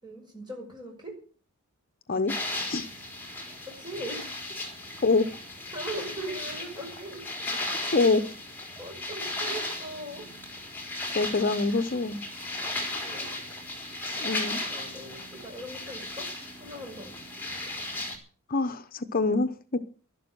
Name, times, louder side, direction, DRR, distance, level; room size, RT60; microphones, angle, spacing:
voice 1, 0.0-1.1 3.7-4.2 5.7-7.2 8.8-10.2 13.0-13.4 14.6-16.3 16.6-17.1, right 1 dB, 20° right, 1 dB, 6.4 m, -40 dB
sound 1, 2.3-18.2, left 2 dB, 10° left, 4.1 m, -36 dB
voice 2, 7.9-8.3 11.1-12.2 14.2-14.6 18.5-19.8, left 3 dB, 45° left, 8 dB, 0.9 m, -25 dB
12.0 x 12.0 x 7.8 m, 0.40 s
head